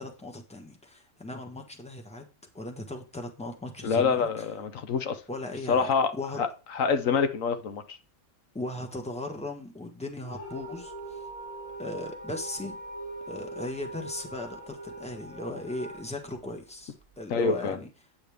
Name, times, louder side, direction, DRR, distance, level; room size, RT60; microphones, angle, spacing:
voice 1, 0.0-2.3 2.5-4.4 5.3-6.4 8.5-11.2 11.8-12.8 13.3-17.9, left 2 dB, 5° left, 1.3 m, -38 dB
voice 2, 3.8-5.2 5.7-6.1 6.4-8.0 17.3-17.8, left 5 dB, 80° left, 1.3 m, -26 dB
sound 1, 10.2-17.2, right 2 dB, 25° left, 3.9 m, -42 dB
8.7 x 8.0 x 3.5 m
omnidirectional pair, 1.3 m